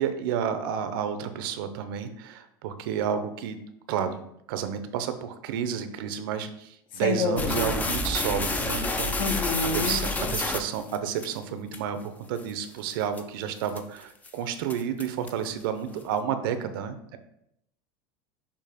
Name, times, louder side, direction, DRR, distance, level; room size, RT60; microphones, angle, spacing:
voice 1, 0.0-3.6 3.9-17.2, right 8 dB, 75° right, 10 dB, 0.7 m, -31 dB
voice 2, 7.0-7.7 9.2-10.0, left 4 dB, 45° left, 5 dB, 0.9 m, -28 dB
sound 1, 7.4-11.3 11.7-11.8 12.4-12.5 12.9-13.2 13.7-14.0 14.2-14.3 14.7-15.5, left 2 dB, 15° left, 0.5 m, -29 dB
6.8 x 2.9 x 5.0 m, 0.76 s
supercardioid pair, 145°, 12 cm